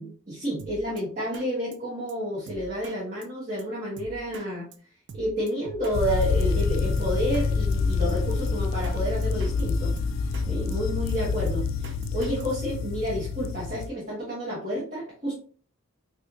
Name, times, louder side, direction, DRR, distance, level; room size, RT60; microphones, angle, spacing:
voice 1, 0.0-4.7 5.1-9.9 10.4-15.4, equal, 35° right, -7 dB, 1.1 m, -30 dB
Drum kit, 0.6-1.0 1.3-1.5 1.7-1.8 2.1-2.2 2.5-3.0 3.2-3.3 3.6-3.7 4.0-4.5 4.7-4.8 5.1-6.0 6.2-7.5 7.7-7.8 8.1-8.2 8.5-9.0 9.2-10.5 10.7-12.4, right 4 dB, 55° right, 0.4 m, -42 dB
sound 1, 5.9-13.9, left 4 dB, 70° left, 0.3 m, -27 dB
4.3 x 2.4 x 2.6 m, 0.42 s
head